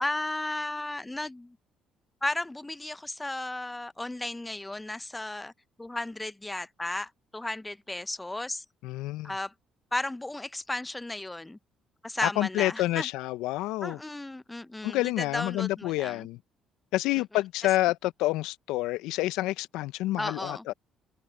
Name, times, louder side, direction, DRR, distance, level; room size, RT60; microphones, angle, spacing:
voice 1, 0.0-1.6 2.2-5.5 5.8-8.6 9.2-9.5 9.9-11.6 12.0-13.1 13.8-16.3 20.2-20.6, left 2 dB, 15° left, 0.8 m, -34 dB
voice 2, 8.8-9.3 12.2-14.0 14.8-16.4 16.9-20.7, left 17 dB, 75° left, 1.0 m, -28 dB
hypercardioid pair, 55°, 0 cm